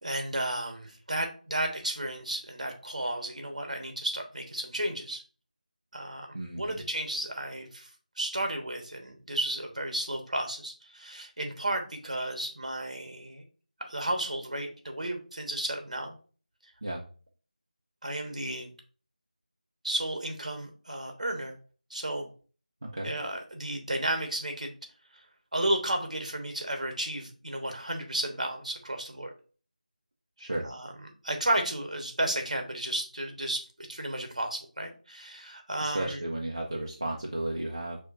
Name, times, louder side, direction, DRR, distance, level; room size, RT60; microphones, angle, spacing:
voice 1, 0.0-5.2 5.9-7.9 8.2-13.4 13.8-16.1 18.0-18.7 19.8-21.5 21.9-22.3 23.0-24.7 25.5-29.3 30.6-30.9 31.2-36.2, right 1 dB, 55° right, 4 dB, 1.2 m, -33 dB
voice 2, 6.3-6.8 16.8-17.0 22.8-23.1 30.4-30.7 35.8-38.0, right 1 dB, 30° right, -2 dB, 0.5 m, -33 dB
6.2 x 2.8 x 2.5 m, 0.38 s
figure-of-eight pair, 180°, 5 cm